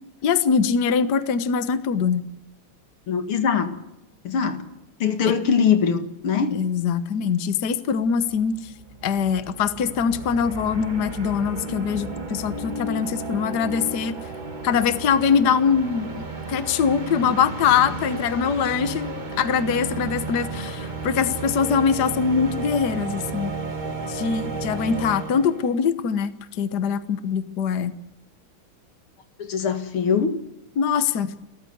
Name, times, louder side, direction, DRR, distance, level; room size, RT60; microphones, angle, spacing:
voice 1, 0.2-2.3 5.3-5.4 6.5-8.7 9.0-14.2 14.6-23.5 24.1-28.0 30.8-31.3, left 6 dB, 55° left, 11 dB, 1.6 m, -23 dB
voice 2, 3.1-3.8 4.2-4.6 5.0-6.5 29.4-30.3, left 6 dB, 85° left, 7 dB, 2.8 m, -22 dB
sound 1, 8.1-8.2 8.3-25.8, right 3 dB, 25° right, 1.5 m, -33 dB
30.0 x 14.0 x 8.0 m, 0.90 s
omnidirectional pair, 2.3 m